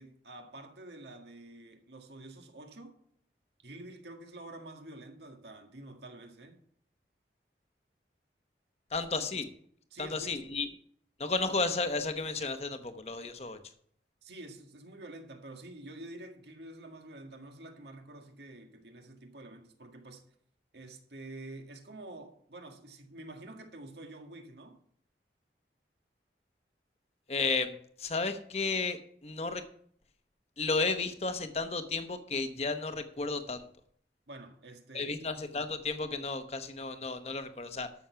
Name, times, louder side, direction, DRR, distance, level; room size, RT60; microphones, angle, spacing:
voice 1, 0.0-3.0 3.6-6.6 9.1-9.3 9.9-10.4 14.2-20.2 20.7-24.8 34.3-35.4, right 2 dB, 75° right, 1.7 m, -48 dB
voice 2, 8.9-9.5 10.0-10.7 11.2-13.6 27.3-29.6 30.6-33.7 34.9-37.9, left 3 dB, 35° left, 0.9 m, -33 dB
13.0 x 6.4 x 5.7 m
head